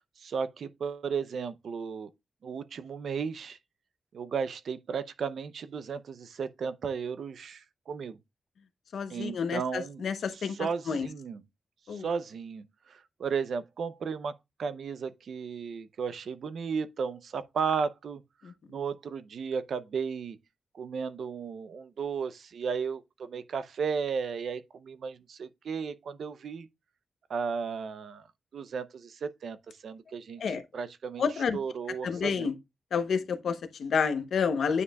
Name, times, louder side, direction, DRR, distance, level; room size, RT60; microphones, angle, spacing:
voice 1, 0.2-2.1 2.4-3.6 4.1-8.2 9.1-10.0 10.3-11.4 11.9-18.2 18.7-20.4 20.7-26.7 27.3-28.3 28.5-31.2 31.5-32.5, right 6 dB, 70° right, 0.6 m, -34 dB
voice 2, 8.9-10.6 10.9-11.1 11.9-12.1 18.4-18.5 30.4-30.6 31.2-31.6 32.0-32.5 32.9-34.8, left 6 dB, 75° left, 0.9 m, -29 dB
9.4 x 5.3 x 2.3 m
wide cardioid pair, 155°, 0 cm